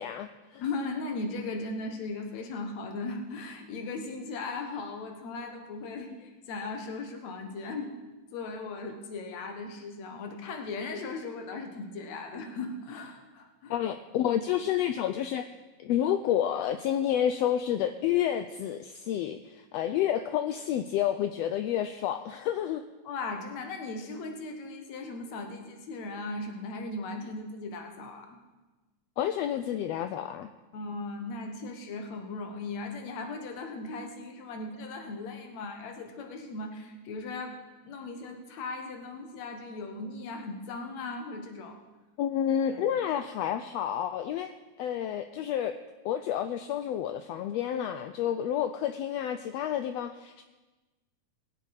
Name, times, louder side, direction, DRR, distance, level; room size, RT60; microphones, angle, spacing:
voice 1, 0.0-0.6 13.7-15.5 15.8-22.8 29.2-30.5 42.2-44.5 44.8-45.7 46.0-50.4, left 10 dB, 85° left, 9 dB, 1.4 m, -29 dB
voice 2, 0.6-7.9 8.3-13.7 23.0-28.4 30.7-37.6 37.8-41.8 42.7-42.8, left 3 dB, 65° left, 4 dB, 2.6 m, -38 dB
21.5 x 7.9 x 4.8 m, 1.2 s
omnidirectional pair, 3.4 m